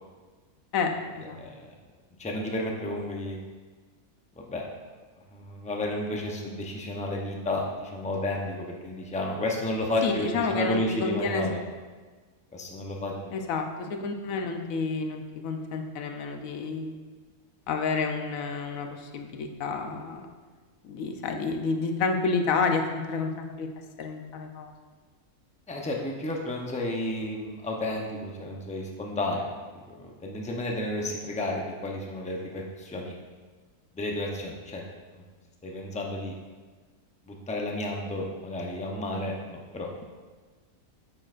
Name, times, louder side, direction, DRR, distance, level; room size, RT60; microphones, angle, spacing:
voice 1, 2.2-3.4 4.4-4.7 5.3-11.7 12.5-13.3 25.7-29.5 29.7-33.2 33.9-34.8 35.1-35.3 35.6-36.4 37.3-39.9, left 1 dB, 10° left, -1 dB, 0.3 m, -32 dB
voice 2, 10.0-11.5 13.3-17.0 17.7-20.3 20.8-23.7 24.0-24.7, left 4 dB, 70° left, 4 dB, 1.1 m, -30 dB
8.7 x 6.3 x 2.5 m, 1.4 s
omnidirectional pair, 1.6 m